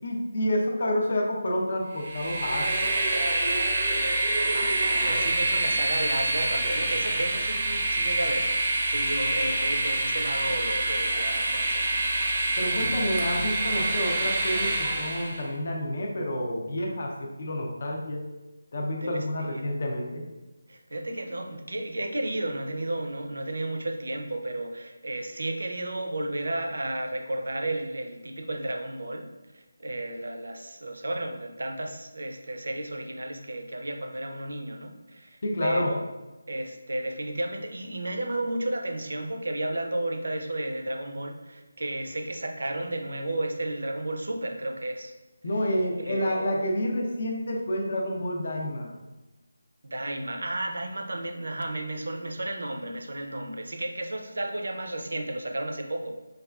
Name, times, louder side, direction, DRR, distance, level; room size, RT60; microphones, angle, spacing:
voice 1, 0.0-3.0 12.6-18.2 18.7-20.2 35.4-35.9 45.4-48.9, equal, 45° left, 0 dB, 0.5 m, -29 dB
Train, 2.0-15.4, right 2 dB, 25° right, 0.5 m, -26 dB
voice 2, 4.5-8.6 8.9-11.9 17.3-17.4 19.0-19.7 20.7-36.0 36.5-45.1 46.0-46.5 49.8-56.1, right 1 dB, 75° right, 4 dB, 0.5 m, -33 dB
4.7 x 2.3 x 2.3 m, 1.1 s
figure-of-eight pair, 175°, 0 cm